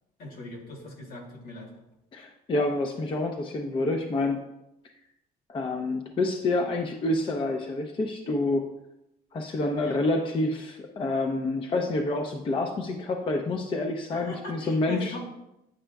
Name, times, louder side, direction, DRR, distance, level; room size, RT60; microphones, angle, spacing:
voice 1, 0.2-1.7 9.8-10.0 14.1-15.2, left 2 dB, 65° left, 1 dB, 1.4 m, -40 dB
voice 2, 2.1-4.4 5.5-8.6 9.3-15.2, left 2 dB, 30° left, 3 dB, 0.5 m, -28 dB
8.7 x 4.9 x 2.3 m, 0.90 s
cardioid pair, 110°, 17 cm